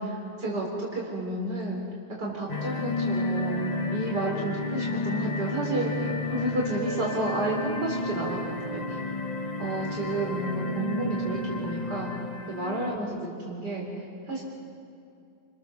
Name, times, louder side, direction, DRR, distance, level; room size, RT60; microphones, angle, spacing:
voice 1, 0.0-1.8 2.2-9.0 9.6-12.1 12.5-13.9 14.3-14.4, right 2 dB, 85° right, -2 dB, 4.5 m, -31 dB
sound 1, 2.5-13.0, left 2 dB, 30° left, 0.8 m, -32 dB
30.0 x 25.0 x 7.1 m, 2.5 s
omnidirectional pair, 1.8 m